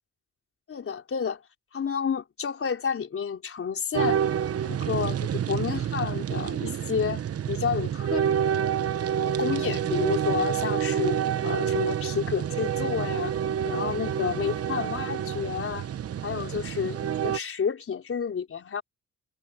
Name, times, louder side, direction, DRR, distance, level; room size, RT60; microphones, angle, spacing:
voice 1, 0.7-1.4 1.7-4.2 4.6-7.2 7.5-8.4 9.2-11.2 11.4-13.3 13.6-15.9 16.2-18.8, left 6 dB, 45° left, 4.6 m, -30 dB
sound 1, 3.9-17.4, right 9 dB, 50° right, 1.2 m, -28 dB
cardioid pair, 90°, 30 cm